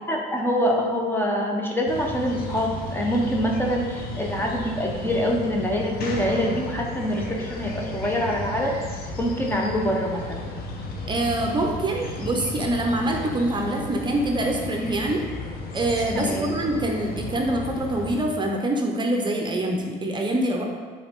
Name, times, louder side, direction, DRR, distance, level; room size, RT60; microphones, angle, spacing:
voice 1, 0.1-8.8 9.2-10.5 16.1-16.5, equal, 10° left, 0 dB, 0.9 m, -25 dB
sound 1, 1.9-18.2, left 2 dB, 65° left, 1.0 m, -34 dB
voice 2, 11.1-15.3 15.7-20.7, right 1 dB, 25° right, 1 dB, 0.8 m, -25 dB
7.8 x 4.0 x 3.7 m, 1.5 s
cardioid pair, 110°, 17 cm